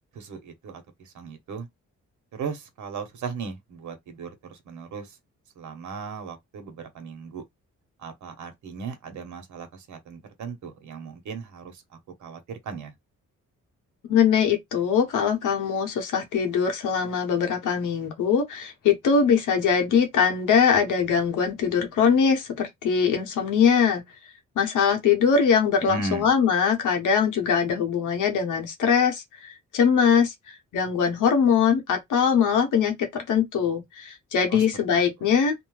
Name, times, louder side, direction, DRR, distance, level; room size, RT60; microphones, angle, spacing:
voice 1, 0.1-1.7 2.3-5.2 5.6-7.4 8.0-11.8 12.2-12.9 25.8-26.3 34.5-34.6 35.2-35.3, right 5 dB, 70° right, 1.0 m, -37 dB
voice 2, 14.0-24.0 24.6-35.5, left 6 dB, 85° left, 1.0 m, -22 dB
2.6 x 2.2 x 3.0 m
cardioid pair, 130°, 30 cm